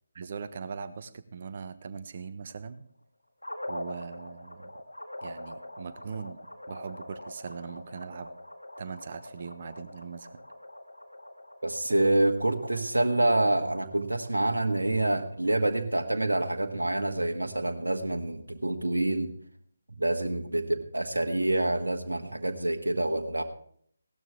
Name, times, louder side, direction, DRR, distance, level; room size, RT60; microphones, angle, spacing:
voice 1, 0.1-2.8 3.7-4.7 5.2-6.4 6.7-8.3 8.8-10.4, right 5 dB, 40° right, 11 dB, 1.0 m, -40 dB
sound 1, 3.4-15.7, left 1 dB, 85° left, 1.6 m, -44 dB
voice 2, 11.6-19.3 20.0-23.4, right 1 dB, 75° right, 4 dB, 1.5 m, -27 dB
17.0 x 12.5 x 3.4 m, 0.62 s
figure-of-eight pair, 150°, 0 cm